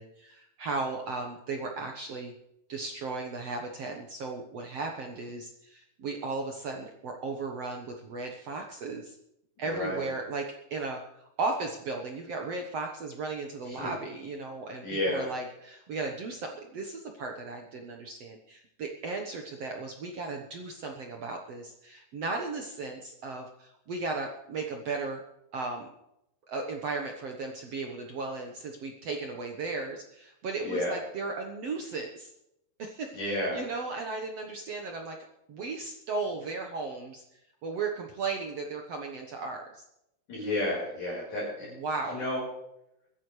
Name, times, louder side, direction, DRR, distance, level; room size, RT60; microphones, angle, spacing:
voice 1, 0.0-2.3 2.7-9.2 9.6-25.2 25.5-25.9 26.5-32.3 32.8-35.2 35.5-37.2 37.6-39.8 41.7-42.2, right 3 dB, 70° right, 2 dB, 1.5 m, -36 dB
voice 2, 9.6-10.1 13.7-13.9 14.8-15.3 30.6-31.0 33.1-33.6 40.3-41.7 42.1-42.4, left 1 dB, 45° left, -6 dB, 6.0 m, -31 dB
23.5 x 11.0 x 3.3 m, 0.81 s
omnidirectional pair, 4.8 m